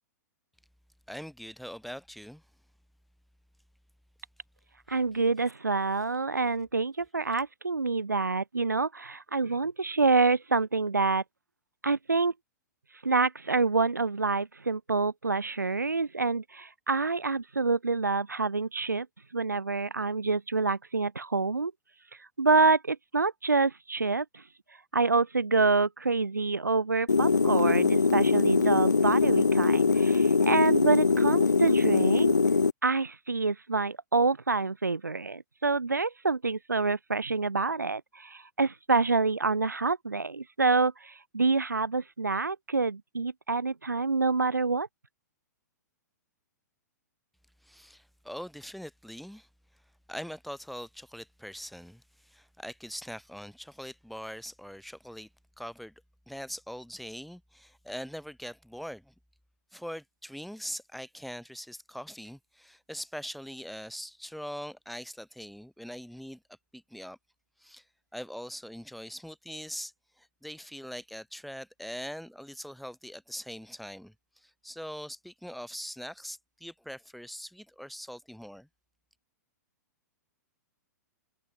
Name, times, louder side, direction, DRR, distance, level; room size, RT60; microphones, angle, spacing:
voice 1, 1.1-2.4 4.9-5.0 6.4-6.5 7.3-7.4 47.6-49.5 50.1-55.3 55.6-55.9 56.3-59.1 59.7-66.4 66.7-67.2 67.6-67.8 68.1-78.7, equal, ahead, 5.8 m, -42 dB
voice 2, 4.9-11.2 11.8-12.3 13.0-19.1 19.3-21.7 22.4-24.2 24.9-32.3 32.8-44.9, right 3 dB, 85° right, 1.3 m, -27 dB
sound 1, 27.1-32.7, left 4 dB, 80° left, 1.1 m, -22 dB
figure-of-eight pair, 110°, 10 cm